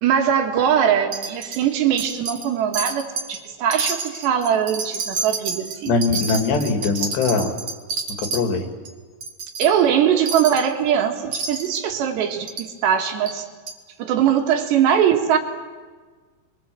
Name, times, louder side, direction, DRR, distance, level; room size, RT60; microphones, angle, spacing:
voice 1, 0.0-6.0 9.6-13.5 14.0-15.4, right 9 dB, 80° right, 3 dB, 4.0 m, -21 dB
Wind chime, 1.1-1.6 2.0-2.5 2.7-3.4 3.7-8.4 8.8-8.9 9.2-9.7 10.3-10.7 11.3-11.8 12.5-12.7 13.3-13.4 13.7-13.8, right 4 dB, 45° right, 2.0 m, -29 dB
voice 2, 5.9-7.5 8.2-8.7, left 4 dB, 75° left, 4 dB, 4.4 m, -21 dB
27.0 x 23.5 x 7.7 m, 1.4 s
omnidirectional pair, 5.0 m